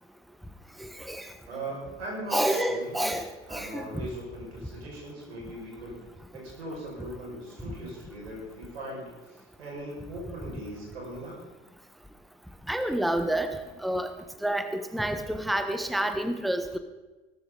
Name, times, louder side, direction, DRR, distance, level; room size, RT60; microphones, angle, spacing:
voice 1, 1.5-3.1 3.5-6.0 6.3-11.4, right 1 dB, 85° right, -3 dB, 5.7 m, -39 dB
voice 2, 2.3-3.3 3.5-3.9 12.7-13.5 13.8-14.1 14.4-16.8, right 1 dB, ahead, 8 dB, 1.3 m, -28 dB
17.0 x 13.5 x 4.0 m, 1.2 s
hypercardioid pair, 65°, 31 cm